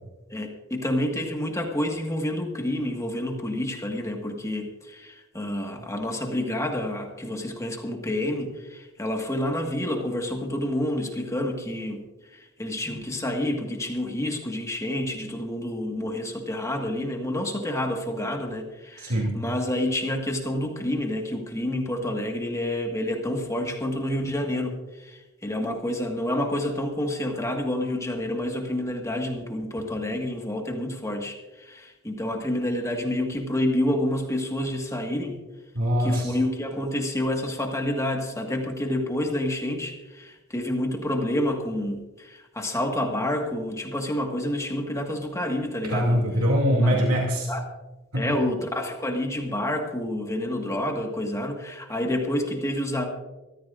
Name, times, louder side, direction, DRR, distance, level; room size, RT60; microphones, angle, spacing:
voice 1, 0.3-35.4 36.0-46.2 46.8-47.0 47.5-47.6 48.1-53.0, left 1 dB, 15° left, 2 dB, 1.6 m, -28 dB
voice 2, 19.0-19.3 35.7-36.4 45.9-47.5 48.1-48.3, equal, 80° right, -1 dB, 2.5 m, -23 dB
23.5 x 14.0 x 2.5 m, 1.1 s
head